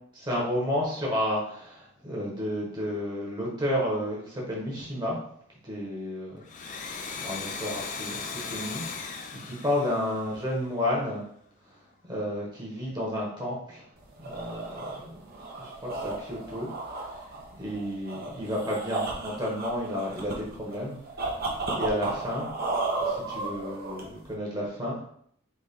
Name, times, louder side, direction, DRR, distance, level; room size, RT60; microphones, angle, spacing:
voice 1, 0.2-5.2 5.6-6.4 6.8-6.9 7.2-11.2 12.1-13.9 14.2-14.8 15.0-15.1 15.5-16.7 17.5-21.0 21.7-22.5 23.0-25.0, left 1 dB, 20° right, -3 dB, 1.3 m, -31 dB
Domestic sounds home sounds, 6.4-10.9, left 5 dB, 40° left, 0.5 m, -38 dB
sound 1, 14.0-24.3, right 3 dB, 50° right, 0.9 m, -34 dB
4.2 x 3.1 x 3.6 m, 0.65 s
head